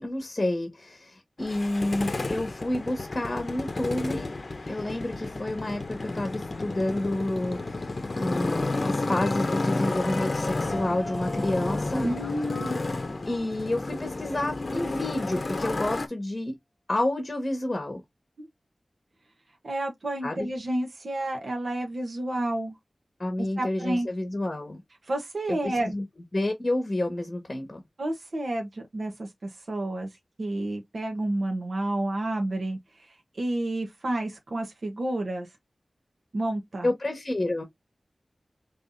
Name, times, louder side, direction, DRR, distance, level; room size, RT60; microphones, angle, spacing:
voice 1, 0.0-4.3 4.7-12.0 13.2-16.6 16.9-18.0 20.2-20.5 23.2-24.8 25.5-25.6 25.9-26.0 26.3-27.8 36.8-37.6, left 1 dB, 30° left, 1.5 m, -29 dB
Motorcycle, 1.4-16.1, left 2 dB, 50° left, 0.8 m, -31 dB
sound 1, 10.7-14.0, equal, 45° right, 2.2 m, -43 dB
voice 2, 12.0-12.8 18.4-18.5 19.6-22.8 23.4-24.1 25.1-25.9 28.0-35.5 36.3-36.9, right 1 dB, 65° right, 1.2 m, -30 dB
5.3 x 3.4 x 2.6 m
wide cardioid pair, 90°, 0 cm